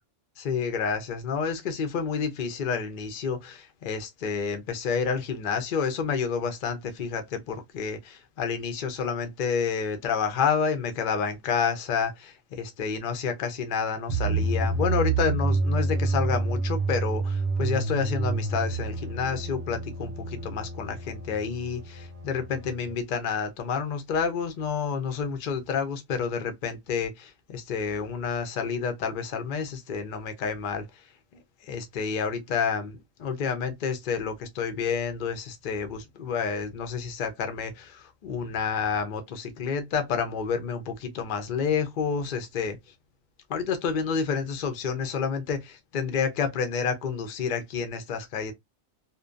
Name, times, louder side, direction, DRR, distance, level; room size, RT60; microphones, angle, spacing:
voice 1, 0.4-30.9 31.6-42.8 43.5-48.5, left 6 dB, 55° left, 0.5 m, -29 dB
sound 1, 14.1-22.9, right 3 dB, 65° right, 0.8 m, -28 dB
2.6 x 2.2 x 2.4 m
omnidirectional pair, 1.4 m